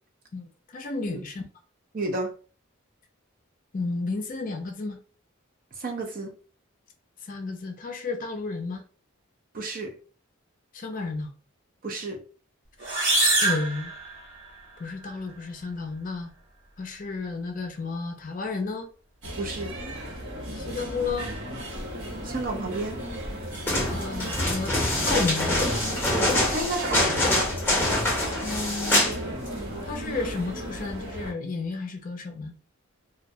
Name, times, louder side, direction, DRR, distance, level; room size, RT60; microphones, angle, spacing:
voice 1, 0.3-1.4 3.7-5.0 7.2-8.8 10.7-11.3 13.4-13.9 14.8-16.3 16.8-18.9 20.5-21.3 23.9-24.7 25.1-25.7 28.4-29.1 29.8-32.5, left 3 dB, 40° left, 5 dB, 0.4 m, -32 dB
voice 2, 1.9-2.3 5.8-6.3 9.5-9.9 11.8-12.2 19.4-19.8 22.2-23.0 26.1-27.5, right 2 dB, 45° right, 3 dB, 0.5 m, -31 dB
sound 1, 12.8-14.6, right 2 dB, 65° right, 1.1 m, -25 dB
sound 2, 19.2-31.3, equal, 85° right, 0.9 m, -36 dB
sound 3, 23.5-29.2 29.5-29.6, left 1 dB, 10° left, 0.8 m, -25 dB
2.2 x 2.1 x 2.7 m, 0.39 s
head